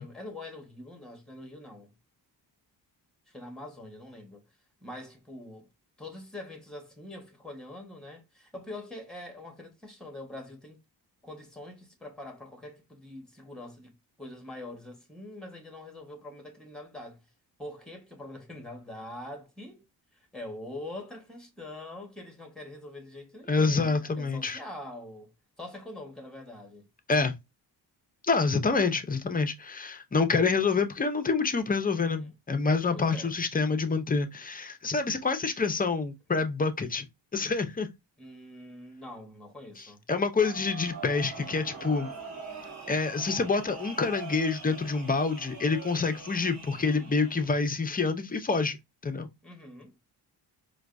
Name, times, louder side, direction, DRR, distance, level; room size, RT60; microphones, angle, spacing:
voice 1, 0.0-1.9 3.3-4.4 4.8-5.7 6.0-10.8 11.2-17.3 17.6-19.9 20.1-26.9 32.2-32.3 32.9-33.3 38.2-40.0 49.4-50.0, left 1 dB, ahead, 1.2 m, -44 dB
voice 2, 23.5-24.6 27.1-27.3 28.2-37.1 37.3-37.9 40.1-42.1 42.9-48.8 49.0-49.3, left 4 dB, 20° left, 0.5 m, -27 dB
sound 1, 40.4-47.6, right 4 dB, 40° right, 2.0 m, -43 dB
4.4 x 2.3 x 2.5 m
cardioid pair, 105°, 43 cm